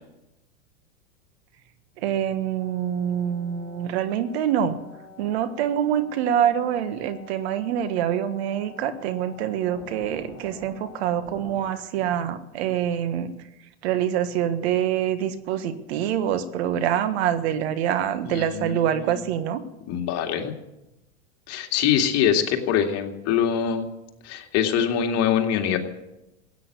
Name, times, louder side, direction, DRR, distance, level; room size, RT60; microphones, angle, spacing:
voice 1, 2.0-4.8 5.2-13.3 13.8-19.6, right 10 dB, 70° right, 10 dB, 1.6 m, -25 dB
sound 1, 2.6-11.6, left 3 dB, 5° right, 6.3 m, -47 dB
voice 2, 18.2-19.2 19.9-20.5 21.5-23.8 24.2-25.8, left 8 dB, 50° left, 3 dB, 2.4 m, -24 dB
16.5 x 9.2 x 8.2 m, 0.92 s
hypercardioid pair, 100°, 34 cm